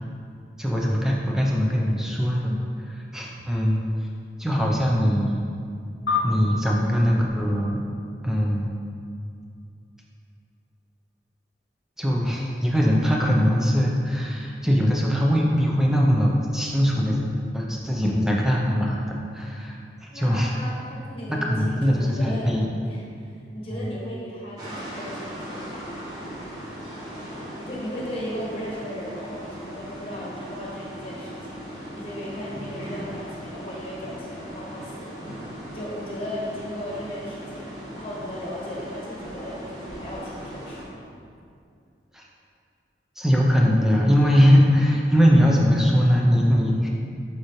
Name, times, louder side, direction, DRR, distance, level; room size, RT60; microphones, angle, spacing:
voice 1, 0.6-3.9 4.4-5.3 6.2-7.8 8.2-8.7 12.0-17.2 17.5-20.5 21.3-22.7 23.7-23.9 42.1-42.3 43.2-46.9, equal, 5° right, -2 dB, 0.6 m, -21 dB
sound 1, 6.1-8.8, left 5 dB, 85° left, 0.5 m, -31 dB
voice 2, 20.1-25.9 27.5-35.2 35.7-41.0, equal, 30° left, -6 dB, 1.5 m, -36 dB
sound 2, 24.6-40.8, equal, 20° right, 1.4 m, -38 dB
7.0 x 5.0 x 3.2 m, 2.3 s
head